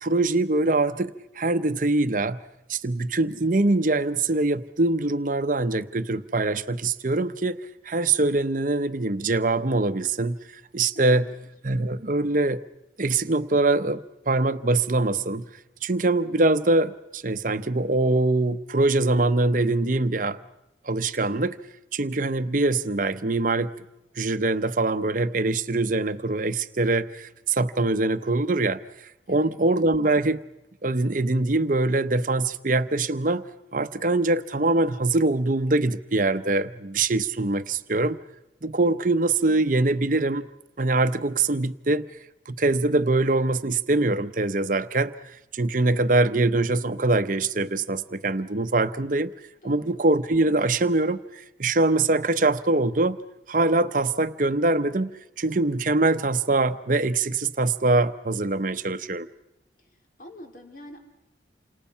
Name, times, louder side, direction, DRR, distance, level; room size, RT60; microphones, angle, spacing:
voice 1, 0.0-2.4 2.7-10.4 10.7-11.3 11.6-12.6 13.0-15.4 15.8-20.4 20.8-21.6 21.9-23.7 24.2-28.8 29.3-30.4 30.8-33.4 33.7-38.2 38.6-40.5 40.8-42.1 42.5-45.1 45.5-49.3 49.6-53.2 53.5-55.1 55.4-59.3, right 2 dB, 50° right, 0.9 m, -23 dB
voice 2, 10.9-11.5 29.3-29.5 49.6-50.0 59.8-61.0, left 1 dB, 50° left, 3.4 m, -46 dB
29.0 x 26.0 x 5.7 m
head